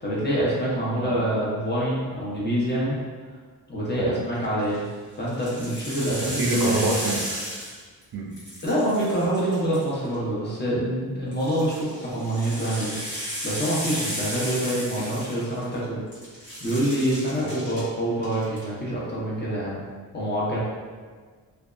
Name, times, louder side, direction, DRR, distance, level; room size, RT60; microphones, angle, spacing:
voice 1, 0.0-3.0 3.7-4.9 5.2-6.6 8.6-13.1 13.4-16.0 16.6-19.8 20.1-20.6, right 1 dB, 25° left, -7 dB, 0.9 m, -26 dB
sound 1, 4.4-4.8 5.3-8.0 8.3-10.1 11.3-15.8 16.1-17.8 18.2-18.6, equal, 75° left, 1.3 m, -34 dB
voice 2, 6.2-7.2 8.1-8.3, right 2 dB, 65° right, -2 dB, 0.6 m, -25 dB
2.6 x 2.3 x 2.4 m, 1.5 s
cardioid pair, 65°, 39 cm